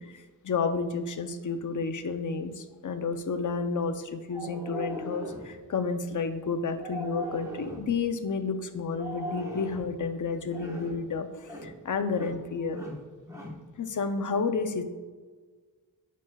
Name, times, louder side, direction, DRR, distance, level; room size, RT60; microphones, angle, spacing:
voice 1, 0.0-12.8 13.8-14.8, left 4 dB, 45° left, 8 dB, 0.6 m, -31 dB
sound 1, 4.3-5.5 6.8-7.9 8.9-9.9 10.5-11.0 11.4-11.8 12.0-12.4 12.7-13.6, equal, 10° right, 1.2 m, -38 dB
9.7 x 6.2 x 2.3 m, 1.4 s
wide cardioid pair, 130°, 42 cm